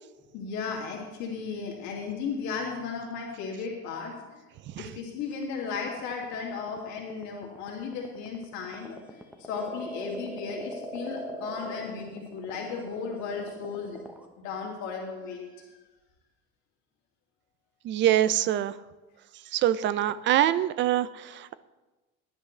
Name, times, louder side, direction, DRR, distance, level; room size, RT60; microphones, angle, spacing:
voice 1, 0.3-4.4 4.8-14.0 14.4-15.6, left 5 dB, 65° left, -2 dB, 2.5 m, -35 dB
sound 1, 5.3-14.3, right 1 dB, 5° right, 0.9 m, -41 dB
voice 2, 17.8-18.7 19.5-21.5, right 12 dB, 40° right, 16 dB, 0.4 m, -24 dB
17.5 x 10.5 x 3.2 m, 1.2 s
cardioid pair, 160°, 31 cm